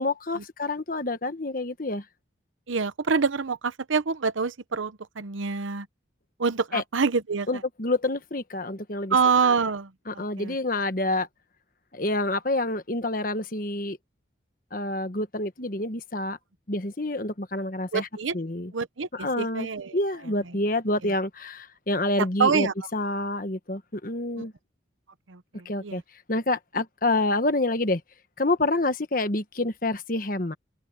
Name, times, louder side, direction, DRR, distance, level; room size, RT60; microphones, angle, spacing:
voice 1, 0.0-2.0 6.7-6.8 7.5-9.1 9.4-9.5 10.1-11.3 11.9-14.0 14.7-16.4 16.7-18.1 18.3-18.7 19.1-19.7 19.9-24.5 25.6-26.0 26.3-28.0 28.4-30.5, left 2 dB, 45° left, 1.3 m, -27 dB
voice 2, 2.7-5.9 6.4-7.5 9.1-10.5 17.9-18.3 18.7-20.0 20.5-20.6 22.4-22.7 24.4-24.5 25.3-26.0, right 5 dB, 90° right, 0.9 m, -26 dB
open air
head